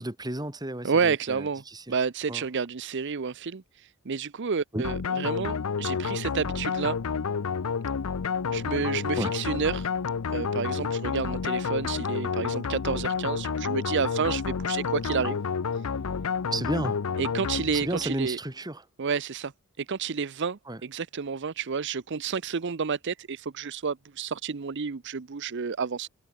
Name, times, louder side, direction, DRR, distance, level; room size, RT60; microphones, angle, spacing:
voice 1, 0.0-1.9 2.3-2.5 4.7-4.8 9.2-9.3 16.5-17.0 17.7-18.9 20.7-20.8, right 1 dB, 20° right, 2.0 m, -32 dB
voice 2, 0.8-1.6 1.9-7.0 8.5-9.9 10.3-15.4 17.2-18.4 19.0-19.5 19.8-26.1, right 5 dB, 55° right, 0.6 m, -30 dB
sound 1, 4.8-18.2, left 5 dB, 75° left, 0.6 m, -30 dB
head